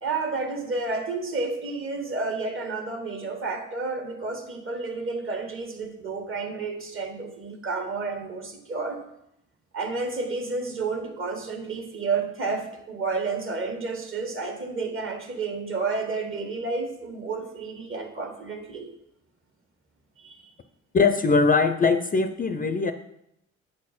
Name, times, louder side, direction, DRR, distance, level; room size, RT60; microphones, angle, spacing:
voice 1, 0.0-9.0 9.7-18.9 20.2-20.4, right 4 dB, 45° right, 4 dB, 1.6 m, -31 dB
voice 2, 20.9-22.9, left 4 dB, 30° left, 8 dB, 0.4 m, -21 dB
8.0 x 4.3 x 5.7 m, 0.81 s
cardioid pair, 90°, 30 cm